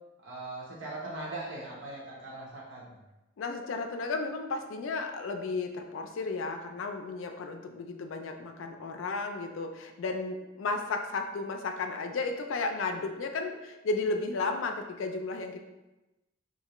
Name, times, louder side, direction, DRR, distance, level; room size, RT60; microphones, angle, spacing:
voice 1, 0.2-2.9, right 2 dB, 70° right, -5 dB, 0.8 m, -40 dB
voice 2, 3.4-15.6, left 3 dB, 80° left, 5 dB, 0.4 m, -33 dB
3.2 x 2.6 x 2.9 m, 1.0 s
head